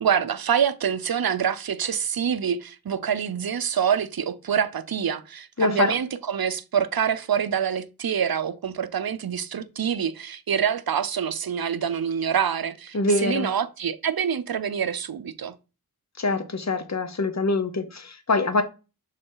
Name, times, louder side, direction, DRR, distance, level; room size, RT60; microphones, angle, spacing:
voice 1, 0.0-15.5, right 8 dB, 75° right, 0.6 m, -26 dB
voice 2, 5.6-5.9 12.9-13.5 16.2-18.6, left 2 dB, 45° left, 1.0 m, -24 dB
6.5 x 3.9 x 3.8 m
wide cardioid pair, 60°, 36 cm